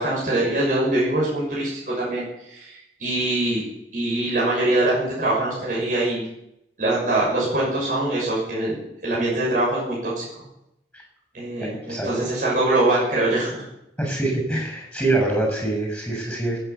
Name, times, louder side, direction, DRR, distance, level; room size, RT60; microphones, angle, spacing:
voice 1, 0.0-3.6 3.9-6.2 6.8-10.2 11.3-13.6, right 2 dB, 45° right, -6 dB, 6.5 m, -23 dB
voice 2, 11.6-12.3 14.0-16.6, right 2 dB, 5° left, 0 dB, 6.9 m, -25 dB
21.5 x 9.3 x 7.1 m, 0.83 s
head